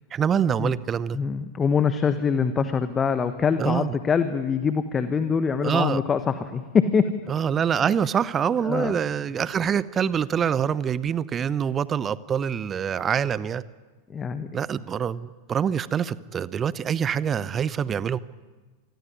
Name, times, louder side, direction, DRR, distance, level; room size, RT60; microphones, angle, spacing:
voice 1, 0.1-1.2 3.6-4.0 5.6-6.0 7.3-13.6 14.5-18.2, right 8 dB, 25° right, 19 dB, 0.8 m, -25 dB
voice 2, 1.1-7.1 8.6-8.9 14.1-14.5, left 6 dB, 20° left, 11 dB, 1.3 m, -24 dB
27.5 x 20.0 x 9.7 m, 1.3 s
figure-of-eight pair, 90°, 0 cm